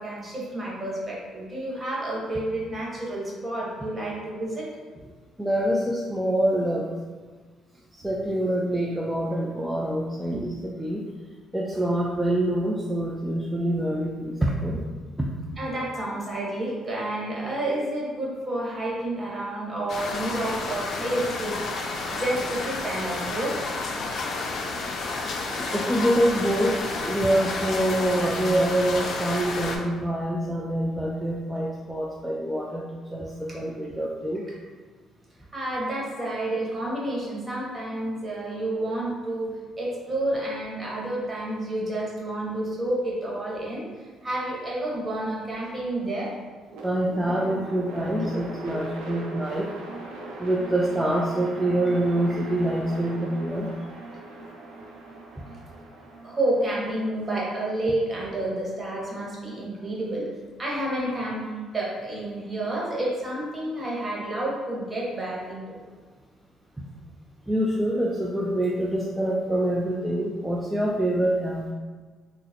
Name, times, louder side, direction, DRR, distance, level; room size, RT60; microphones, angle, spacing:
voice 1, 0.0-4.7 10.3-10.4 15.6-21.5 22.1-23.6 35.5-46.3 56.2-60.3 60.6-65.8, right 1 dB, 30° right, -5 dB, 1.2 m, -30 dB
voice 2, 5.4-6.9 7.9-10.5 10.8-11.1 11.5-14.8 15.2-15.3 25.7-34.4 46.8-49.7 50.4-53.7 55.4-55.5 66.8-66.9 67.5-71.7, right 1 dB, 10° right, -2 dB, 0.4 m, -25 dB
sound 1, 19.9-29.8, left 3 dB, 60° left, 0.4 m, -31 dB
sound 2, 46.7-58.8, right 2 dB, 80° right, 0.6 m, -40 dB
3.7 x 2.0 x 2.8 m, 1.5 s
supercardioid pair, 70°, 0 cm